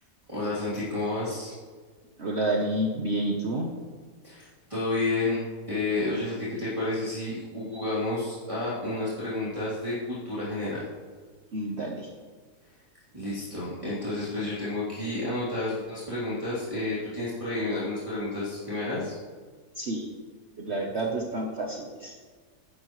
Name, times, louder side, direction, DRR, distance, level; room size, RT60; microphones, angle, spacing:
voice 1, 0.3-1.5 4.2-10.8 13.1-19.1, left 2 dB, 20° right, -12 dB, 3.2 m, -30 dB
voice 2, 2.2-3.7 11.5-12.1 19.8-20.1 20.6-22.1, right 1 dB, 45° right, 0 dB, 1.2 m, -29 dB
13.5 x 10.5 x 3.2 m, 1.5 s
omnidirectional pair, 1.7 m